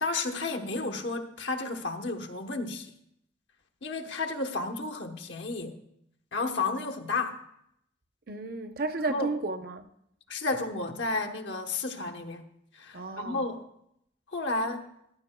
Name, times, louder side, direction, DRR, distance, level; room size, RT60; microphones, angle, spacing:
voice 1, 0.0-2.9 3.8-5.8 6.3-7.4 9.1-9.3 10.3-12.4 12.8-13.6 14.3-14.9, left 3 dB, 70° left, 1.0 m, -32 dB
voice 2, 8.3-9.8 12.9-13.5, right 3 dB, 50° right, 0.7 m, -33 dB
14.5 x 12.0 x 2.2 m
head